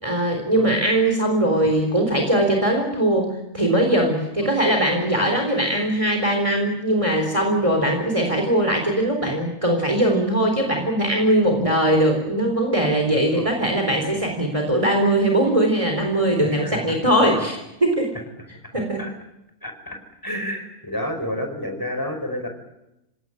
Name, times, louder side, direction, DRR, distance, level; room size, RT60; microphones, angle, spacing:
voice 1, 0.0-3.3 3.5-18.1 18.7-19.0, right 1 dB, 20° right, 3 dB, 4.0 m, -20 dB
voice 2, 13.1-13.5 13.9-14.2 16.4-17.0 19.0-19.1 19.6-20.0 20.2-22.5, left 1 dB, 15° left, 5 dB, 4.9 m, -31 dB
26.5 x 18.0 x 9.9 m, 0.89 s
omnidirectional pair, 1.6 m